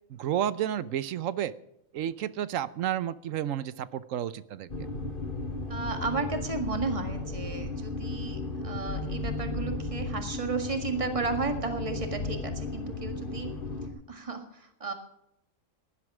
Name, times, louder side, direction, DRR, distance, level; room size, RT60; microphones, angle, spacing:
voice 1, 0.1-1.5 1.9-4.7, right 10 dB, 75° right, 16 dB, 1.1 m, -31 dB
sound 1, 4.7-13.9, left 3 dB, 40° left, 2.2 m, -35 dB
voice 2, 5.7-13.5 14.1-14.9, right 4 dB, 25° right, 5 dB, 1.9 m, -33 dB
17.0 x 11.0 x 4.9 m, 0.79 s
omnidirectional pair, 1.4 m